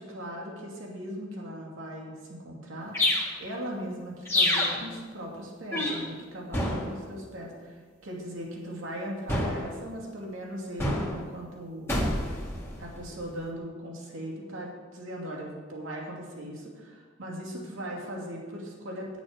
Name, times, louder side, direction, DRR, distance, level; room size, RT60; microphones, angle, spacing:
voice 1, 0.0-11.9 12.8-19.2, equal, 75° right, -2 dB, 2.7 m, -39 dB
sound 1, 2.9-3.3 4.3-4.8 5.7-6.0 6.5-7.0 9.3-9.7 10.8-11.2 11.9-13.1, left 1 dB, 10° left, 1.9 m, -27 dB
9.7 x 8.6 x 6.4 m, 1.5 s
head